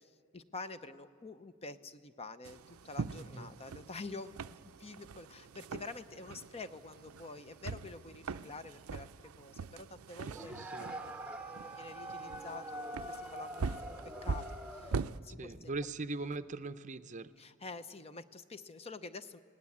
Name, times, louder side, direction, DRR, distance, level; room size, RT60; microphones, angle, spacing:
voice 1, 0.0-15.7 17.4-19.4, left 3 dB, 30° left, 11 dB, 0.6 m, -48 dB
sound 1, 2.4-15.2, right 4 dB, 85° right, 0.5 m, -43 dB
voice 2, 3.2-3.5 10.2-10.9 15.3-17.3, right 3 dB, 35° right, 12 dB, 0.6 m, -41 dB
sound 2, 10.3-15.1, right 1 dB, 5° right, 0.8 m, -44 dB
29.0 x 18.5 x 8.5 m, 2.2 s
head